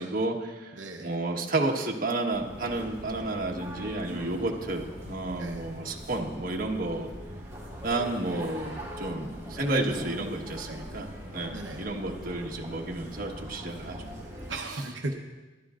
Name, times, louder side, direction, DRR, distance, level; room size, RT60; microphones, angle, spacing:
voice 1, 0.0-7.1 7.8-14.0, right 2 dB, 50° right, 0 dB, 1.4 m, -31 dB
voice 2, 0.7-1.1 4.0-4.6 5.3-5.7 9.7-10.3 10.6-10.9 11.5-11.9 13.8-15.1, right 2 dB, 75° right, 0 dB, 1.0 m, -37 dB
sound 1, 2.3-14.5, equal, 15° right, 4.1 m, -42 dB
21.0 x 12.5 x 2.5 m, 1.2 s
head